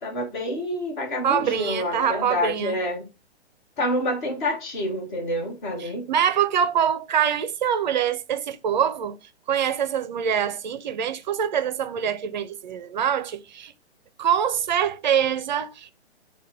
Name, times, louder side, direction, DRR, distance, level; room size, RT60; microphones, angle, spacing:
voice 1, 0.0-3.1 3.8-6.1, left 1 dB, 45° left, 1.4 m, -28 dB
voice 2, 1.2-2.8 5.8-9.2 9.5-13.7 14.2-15.9, right 8 dB, 45° right, 0.4 m, -24 dB
4.5 x 2.2 x 4.6 m
figure-of-eight pair, 125°, 34 cm